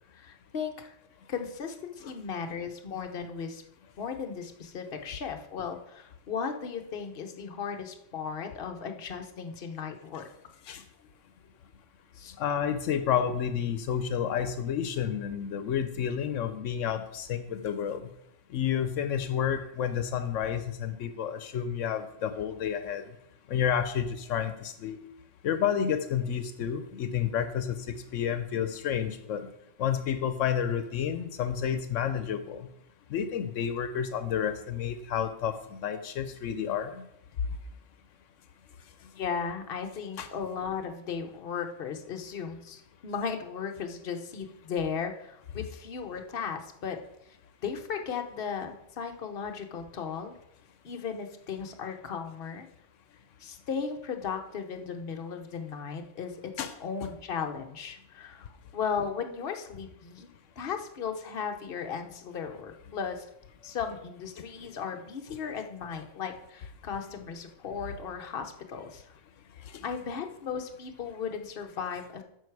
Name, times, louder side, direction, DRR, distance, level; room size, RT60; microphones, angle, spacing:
voice 1, 0.1-0.9 1.3-3.6 4.0-10.3 12.2-12.3 39.2-47.0 47.3-47.4 47.6-50.3 50.8-52.7 53.4-60.3 60.6-63.3 63.6-69.0 69.8-72.2, left 6 dB, 55° left, 4 dB, 1.0 m, -36 dB
voice 2, 12.4-18.1 18.5-23.0 23.5-25.0 25.4-29.5 29.8-32.7 33.1-37.0 40.2-40.3 56.6-56.7 57.0-57.1 69.7-69.8, left 8 dB, 85° left, 10 dB, 1.0 m, -30 dB
9.4 x 6.4 x 4.7 m, 0.79 s
omnidirectional pair, 1.3 m